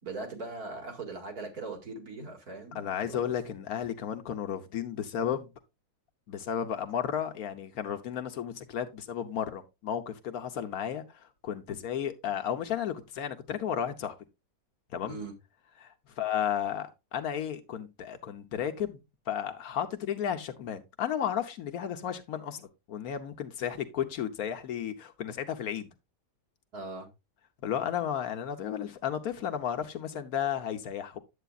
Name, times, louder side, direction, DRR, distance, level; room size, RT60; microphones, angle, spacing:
voice 1, 0.0-2.8 3.1-3.2 15.1-15.3 26.7-27.1, right 3 dB, 75° right, 2.6 m, -40 dB
voice 2, 2.7-5.5 6.3-14.1 14.9-15.2 15.8-25.9 27.6-31.2, left 9 dB, 70° left, 1.3 m, -33 dB
9.1 x 8.0 x 2.4 m
omnidirectional pair, 1.6 m